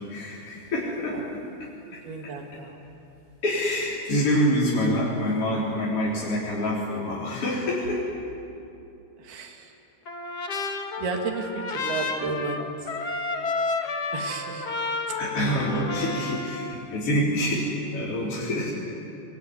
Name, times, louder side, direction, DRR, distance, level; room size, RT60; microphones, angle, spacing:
voice 1, 0.1-1.3 1.9-2.0 3.4-8.0 15.2-18.7, equal, 35° left, -7 dB, 4.6 m, -26 dB
voice 2, 1.9-2.8 9.2-9.7 10.5-12.9 14.1-14.7 15.1-15.2, right 4 dB, 80° right, 3 dB, 4.2 m, -33 dB
Trumpet, 10.1-16.8, left 3 dB, 70° left, 0.9 m, -31 dB
24.5 x 23.0 x 9.6 m, 2.8 s
omnidirectional pair, 4.4 m